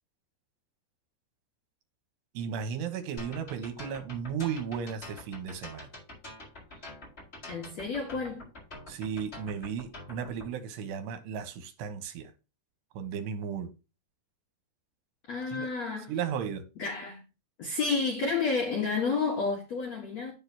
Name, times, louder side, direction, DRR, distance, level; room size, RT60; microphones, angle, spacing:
voice 1, 2.3-5.9 8.9-12.3 12.9-13.7 15.5-15.7 16.1-16.6, right 7 dB, 75° right, 3.3 m, -35 dB
sound 1, 3.2-10.5, left 2 dB, 15° left, 5.0 m, -45 dB
voice 2, 7.5-8.5 15.3-16.2 16.8-17.2 17.6-20.3, left 4 dB, 55° left, 2.1 m, -30 dB
9.0 x 7.6 x 3.0 m
omnidirectional pair, 5.2 m